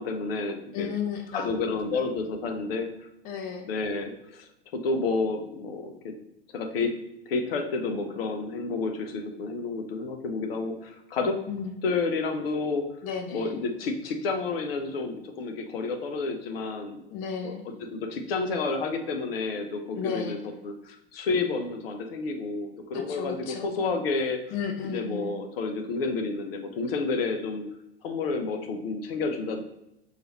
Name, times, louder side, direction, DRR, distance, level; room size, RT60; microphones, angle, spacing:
voice 1, 0.0-0.9 1.3-2.9 3.7-6.1 6.5-7.0 7.3-11.4 11.8-12.9 13.3-17.0 17.4-20.4 20.6-24.5 24.8-27.6 28.0-29.6, left 3 dB, 60° left, 5 dB, 0.7 m, -30 dB
voice 2, 0.7-1.5 1.9-2.1 3.2-3.7 11.5-11.7 13.0-13.6 17.1-17.6 20.0-20.4 22.9-23.7 24.5-25.3, left 6 dB, 25° left, 4 dB, 0.4 m, -33 dB
4.7 x 2.4 x 2.9 m, 0.87 s
figure-of-eight pair, 95°, 32 cm